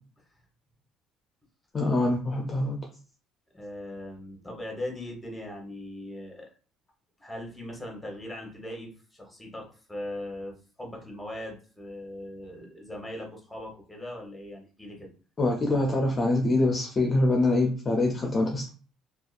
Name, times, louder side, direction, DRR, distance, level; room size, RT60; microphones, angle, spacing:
voice 1, 1.7-2.8 15.4-18.7, left 2 dB, 30° left, 0 dB, 0.5 m, -24 dB
voice 2, 3.5-6.5 7.2-15.1, left 1 dB, 5° left, 0 dB, 1.0 m, -39 dB
2.6 x 2.3 x 2.4 m, 0.36 s
cardioid pair, 110°, 0 cm